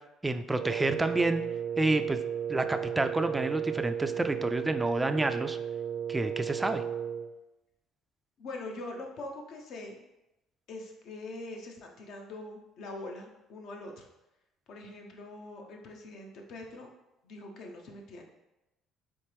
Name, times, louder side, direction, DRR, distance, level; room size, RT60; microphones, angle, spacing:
voice 1, 0.2-1.4 1.8-2.2 2.5-5.6 6.1-6.8, right 2 dB, 15° right, 8 dB, 0.3 m, -29 dB
Wind instrument woodwind instrument, 0.6-7.3, right 8 dB, 70° right, 0.5 m, -34 dB
voice 2, 8.4-10.0 10.7-14.1 14.7-16.9 17.2-18.2, left 2 dB, 65° left, 2 dB, 0.8 m, -43 dB
4.4 x 3.5 x 3.4 m, 0.96 s
cardioid pair, 95°, 0 cm